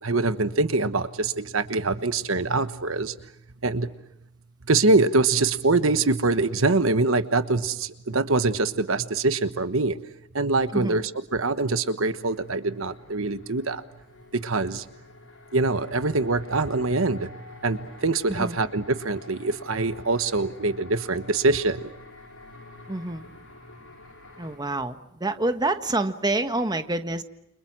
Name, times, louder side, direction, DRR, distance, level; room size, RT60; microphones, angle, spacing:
voice 1, 0.0-3.1 3.6-3.9 4.7-10.0 10.3-11.0 11.3-13.8 14.3-14.8 15.5-21.9, right 3 dB, 70° right, 11 dB, 1.2 m, -24 dB
sound 1, 12.0-24.6, left 2 dB, 85° left, 7.4 m, -47 dB
voice 2, 22.9-23.2 24.4-27.2, right 2 dB, 20° right, 8 dB, 1.4 m, -27 dB
29.5 x 27.0 x 6.2 m, 0.83 s
head